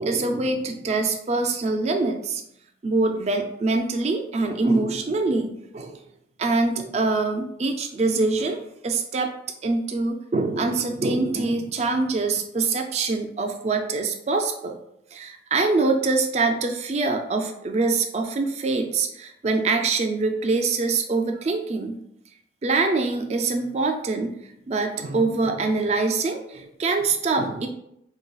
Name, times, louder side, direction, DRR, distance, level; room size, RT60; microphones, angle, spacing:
voice 1, 0.0-2.4 2.8-6.0 6.4-9.3 9.6-14.8 15.1-22.0 22.6-24.3 24.7-27.7, right 3 dB, 35° right, 5 dB, 0.3 m, -24 dB
5.1 x 2.3 x 2.3 m, 0.77 s
head